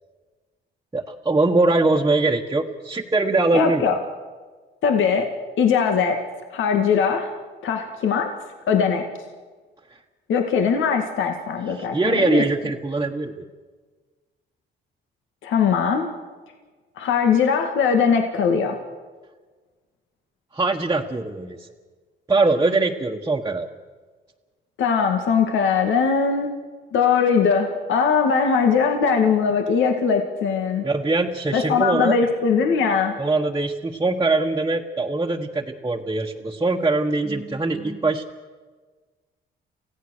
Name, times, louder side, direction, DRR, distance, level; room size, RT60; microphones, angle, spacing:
voice 1, 0.9-3.8 9.9-10.0 11.8-13.5 20.5-21.7 22.3-23.7 30.8-32.2 33.2-38.2, right 3 dB, 15° right, -2 dB, 1.4 m, -22 dB
voice 2, 3.5-4.0 4.8-5.3 5.6-6.2 6.5-7.3 7.6-8.4 8.7-9.1 10.3-12.4 15.4-16.1 17.0-18.8 24.8-26.5 26.9-30.9 31.5-33.1, left 6 dB, 80° left, 4 dB, 2.0 m, -20 dB
28.0 x 16.0 x 6.5 m, 1.4 s
cardioid pair, 90°, 20 cm